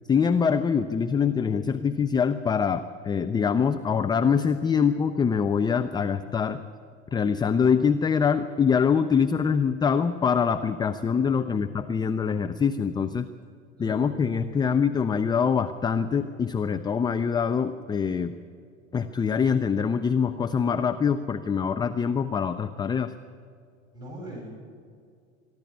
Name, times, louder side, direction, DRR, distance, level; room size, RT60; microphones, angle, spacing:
voice 1, 0.1-6.6 7.1-13.3 13.8-18.3 18.9-23.1, left 6 dB, 10° left, 9 dB, 0.5 m, -24 dB
voice 2, 23.9-24.5, right 1 dB, 10° right, 0 dB, 6.9 m, -40 dB
23.5 x 12.0 x 9.7 m, 2.3 s
figure-of-eight pair, 80°, 39 cm